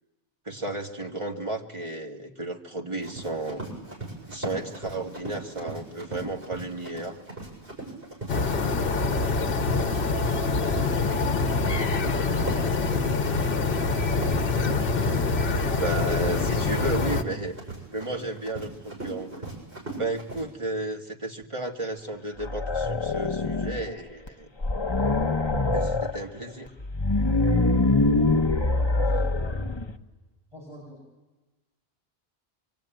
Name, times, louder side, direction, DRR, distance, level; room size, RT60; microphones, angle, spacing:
voice 1, 0.5-3.6 4.3-7.2 15.7-17.6 17.9-19.4 20.0-24.5 25.7-26.7, right 2 dB, 30° right, 1 dB, 2.0 m, -33 dB
Run, 3.0-20.4, right 2 dB, 65° right, 7.2 m, -39 dB
sound 1, 8.3-17.2, left 3 dB, 65° left, 1.2 m, -25 dB
voice 2, 9.6-11.9 28.1-29.9 30.5-31.1, equal, 5° right, -4 dB, 7.7 m, -44 dB
sound 2, 22.4-23.9 24.3-24.4 24.6-26.2 26.8-29.9, left 2 dB, 25° left, 1.0 m, -24 dB
25.0 x 24.0 x 9.1 m, 1.2 s
omnidirectional pair, 1.1 m